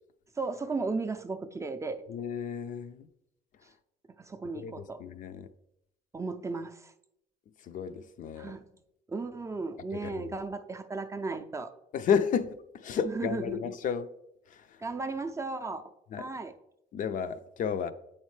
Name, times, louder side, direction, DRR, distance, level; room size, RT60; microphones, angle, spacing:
voice 1, 0.4-2.1 4.2-5.0 6.1-6.9 8.4-8.6 9.1-11.7 13.0-13.6 14.8-15.9 16.2-16.5, right 3 dB, 15° right, 0.4 m, -35 dB
voice 2, 2.1-3.1 4.5-5.5 7.6-8.6 9.9-10.3 11.9-14.1 14.5-14.7 16.1-16.3 16.9-17.9, left 7 dB, 50° left, 0.4 m, -32 dB
7.9 x 4.3 x 3.2 m
cardioid pair, 110°, 17 cm